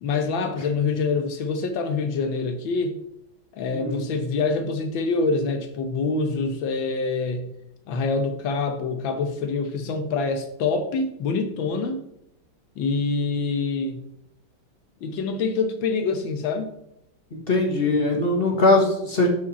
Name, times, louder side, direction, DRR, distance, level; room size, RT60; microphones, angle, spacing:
voice 1, 0.0-3.0 3.6-7.5 7.9-12.0 12.8-14.0 15.0-16.7, left 4 dB, 80° left, 8 dB, 1.7 m, -25 dB
voice 2, 3.7-4.0 17.3-19.3, left 2 dB, 30° left, 2 dB, 1.5 m, -21 dB
11.5 x 5.1 x 4.1 m, 0.80 s
omnidirectional pair, 2.1 m